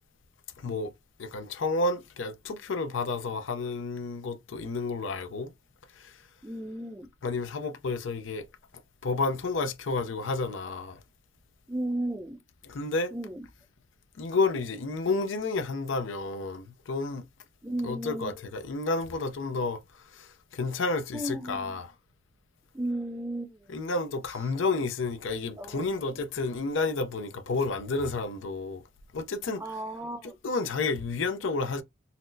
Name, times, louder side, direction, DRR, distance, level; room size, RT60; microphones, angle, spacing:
voice 1, 0.6-0.9 1.2-5.5 6.0-6.2 7.2-8.5 9.0-11.0 12.6-13.1 14.2-17.2 17.8-21.9 23.7-28.8 29.1-29.6 30.4-31.8, left 3 dB, 80° left, 0.5 m, -31 dB
voice 2, 6.4-7.1 11.7-12.4 13.1-13.4 17.6-18.3 21.1-21.8 22.7-23.7 25.6-26.1 29.6-30.4, right 1 dB, 15° right, 0.4 m, -34 dB
4.1 x 2.0 x 2.6 m
head